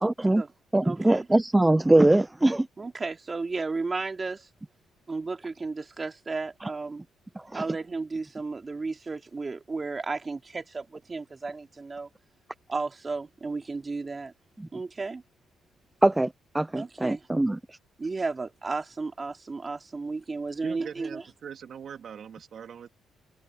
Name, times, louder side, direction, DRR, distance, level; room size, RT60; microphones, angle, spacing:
voice 1, 0.0-0.4 0.7-2.7 7.5-7.6 16.0-16.3 16.5-17.6, right 1 dB, 10° right, 0.5 m, -22 dB
voice 2, 0.8-1.3 2.8-4.5 5.1-7.0 7.5-12.1 12.7-14.3 14.7-15.2 16.7-17.3 18.0-21.2, right 3 dB, 30° right, 3.0 m, -33 dB
voice 3, 20.6-22.9, right 8 dB, 60° right, 2.6 m, -41 dB
cardioid pair, 90°, 0 cm